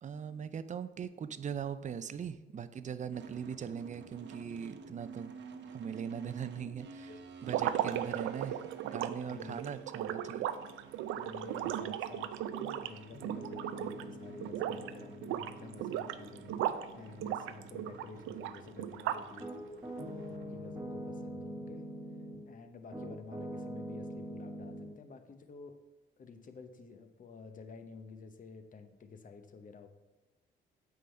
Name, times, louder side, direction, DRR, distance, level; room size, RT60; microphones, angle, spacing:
voice 1, 0.0-5.3 5.7-7.1 7.4-10.5, right 7 dB, 40° right, 13 dB, 0.5 m, -40 dB
sound 1, 3.1-21.0, right 6 dB, 65° right, 0.8 m, -52 dB
sound 2, 7.4-14.1 14.4-14.9 15.2-16.9 17.2-19.4, right 11 dB, 90° right, 0.4 m, -36 dB
voice 2, 9.3-9.7 10.0-10.1 11.2-19.6 20.0-21.8 22.5-25.8 26.2-29.9, left 4 dB, 40° left, 7 dB, 0.9 m, -51 dB
Piano, 13.1-22.5 22.9-24.9, equal, 10° right, 1.8 m, -45 dB
8.3 x 3.9 x 5.6 m, 1.1 s
cardioid pair, 90°, 20 cm